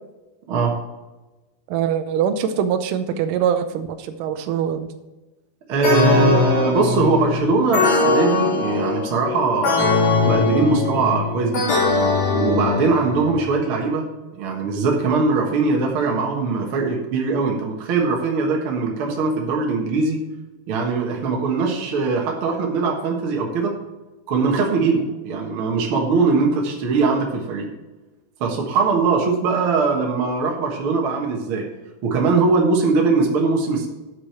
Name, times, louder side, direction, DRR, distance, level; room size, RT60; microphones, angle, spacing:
voice 1, 1.7-4.9, right 8 dB, 80° right, 9 dB, 2.0 m, -23 dB
voice 2, 5.7-11.6 12.3-14.0 14.4-20.2 20.7-23.7 24.3-27.7 28.4-31.6 32.0-33.9, right 4 dB, 60° right, 0 dB, 1.4 m, -21 dB
sound 1, 5.8-13.5, left 3 dB, 65° left, 4.5 m, -21 dB
9.8 x 4.8 x 5.9 m, 1.1 s
omnidirectional pair, 4.4 m